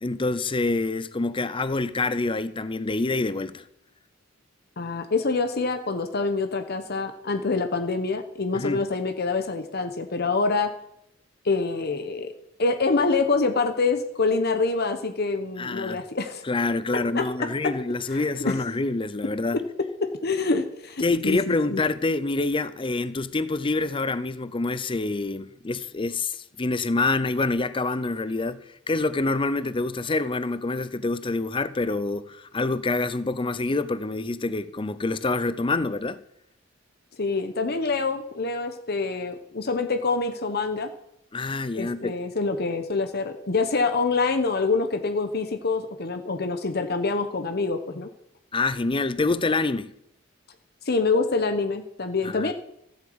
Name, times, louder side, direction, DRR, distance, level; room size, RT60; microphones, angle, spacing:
voice 1, 0.0-3.6 8.5-8.9 15.6-16.0 16.4-19.6 21.0-36.2 41.3-42.1 48.5-49.9 52.2-52.5, left 3 dB, 25° left, 0.6 m, -26 dB
voice 2, 4.8-10.7 11.4-12.3 12.6-16.4 16.9-17.5 18.1-18.6 19.5-19.6 20.2-21.8 37.2-40.9 41.7-48.1 50.9-52.5, left 3 dB, 55° left, 1.1 m, -26 dB
14.0 x 8.0 x 7.9 m
head